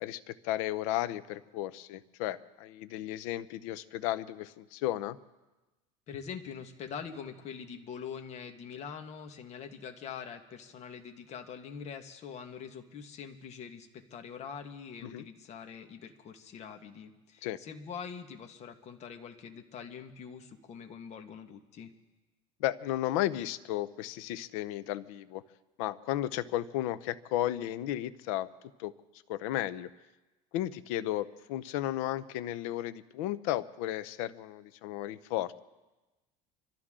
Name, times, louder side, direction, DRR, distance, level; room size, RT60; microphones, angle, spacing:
voice 1, 0.0-5.2 15.0-15.2 17.4-17.6 22.6-25.4 25.8-28.5 28.8-28.9 29.3-29.9 30.5-35.6, left 13 dB, 80° left, 14 dB, 0.8 m, -34 dB
voice 2, 6.1-21.9, left 7 dB, 40° left, 6 dB, 1.6 m, -44 dB
26.0 x 13.0 x 3.8 m, 1.1 s
cardioid pair, 135°, 17 cm